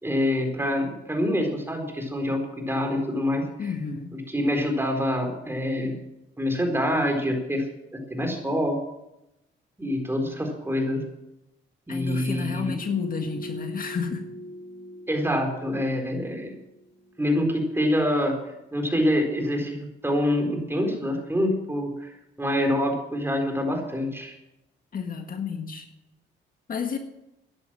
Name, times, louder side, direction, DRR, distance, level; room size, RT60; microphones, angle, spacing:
voice 1, 0.0-3.7 4.1-6.0 6.4-7.7 8.1-8.8 9.8-11.0 11.9-12.7 15.1-16.6 17.2-18.4 18.7-22.1 22.4-24.3, left 1 dB, 10° right, 3 dB, 4.4 m, -26 dB
voice 2, 3.6-4.2 11.9-14.2 24.9-25.9 26.7-27.0, left 6 dB, 45° left, 5 dB, 1.8 m, -31 dB
sound 1, 12.5-17.6 17.9-18.0, equal, 15° left, 5.1 m, -41 dB
13.5 x 10.5 x 7.7 m, 0.89 s
cardioid pair, 90°, 20 cm